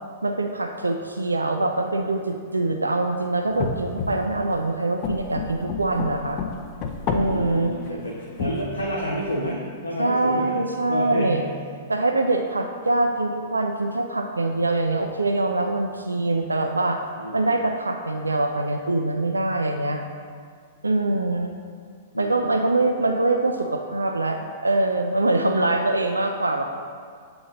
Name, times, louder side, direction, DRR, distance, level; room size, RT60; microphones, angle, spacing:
voice 1, 0.2-6.4 7.1-7.7 10.0-11.5 11.9-17.0 17.3-20.0 20.8-21.5 22.2-26.8, right 2 dB, 85° right, 4 dB, 0.4 m, -24 dB
sound 1, 3.5-4.5 5.0-7.5 7.9-9.3, left 5 dB, 35° left, 0.6 m, -30 dB
voice 2, 7.2-10.6 10.9-11.4 17.2-17.5 22.1-22.4, equal, 85° left, -4 dB, 0.8 m, -29 dB
7.6 x 3.9 x 4.0 m, 2.1 s
figure-of-eight pair, 105°, 0 cm